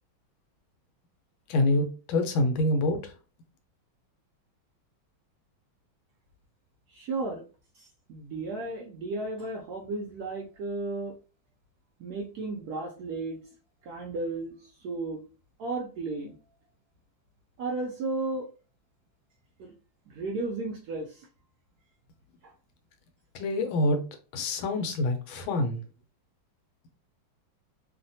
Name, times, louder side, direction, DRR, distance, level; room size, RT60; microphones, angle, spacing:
voice 1, 1.5-3.0 23.3-24.0 24.3-25.8, left 1 dB, 90° left, 6 dB, 1.4 m, -26 dB
voice 2, 6.9-7.4 7.7-11.2 12.0-13.4 13.8-15.2 15.6-16.4 17.6-18.5 19.6-19.7 20.1-21.3 22.4-22.5, right 3 dB, 85° right, 0 dB, 0.8 m, -34 dB
3.2 x 2.1 x 2.6 m, 0.35 s
omnidirectional pair, 2.2 m